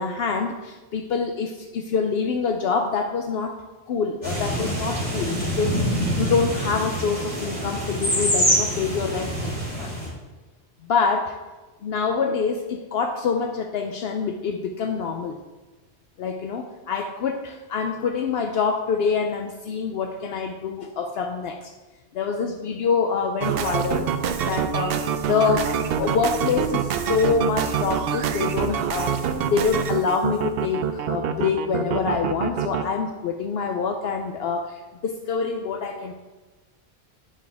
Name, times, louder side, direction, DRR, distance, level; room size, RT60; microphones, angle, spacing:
voice 1, 0.0-3.6 3.9-9.5 9.8-9.9 10.9-11.4 11.8-15.4 16.2-21.7 22.1-36.1, left 5 dB, 70° left, 5 dB, 0.8 m, -26 dB
sound 1, 4.2-10.1, equal, 40° left, 3.4 m, -25 dB
sound 2, 23.4-32.8, right 8 dB, 65° right, 0.8 m, -26 dB
9.8 x 7.2 x 3.4 m, 1.2 s
omnidirectional pair, 1.1 m